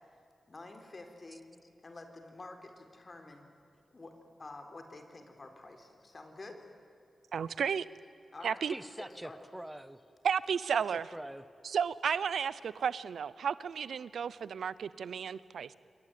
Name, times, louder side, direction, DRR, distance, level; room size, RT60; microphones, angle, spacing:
voice 1, 0.5-3.5 3.9-6.6 8.3-8.6 9.0-9.4, left 2 dB, 45° left, 5 dB, 4.2 m, -49 dB
voice 2, 7.3-7.9 8.4-8.7 10.2-11.0 11.6-15.7, right 7 dB, 85° right, 18 dB, 0.6 m, -33 dB
voice 3, 8.7-10.0 10.7-11.4, right 1 dB, 10° right, 13 dB, 1.5 m, -44 dB
27.0 x 23.0 x 9.3 m, 2.5 s
cardioid pair, 45°, 0 cm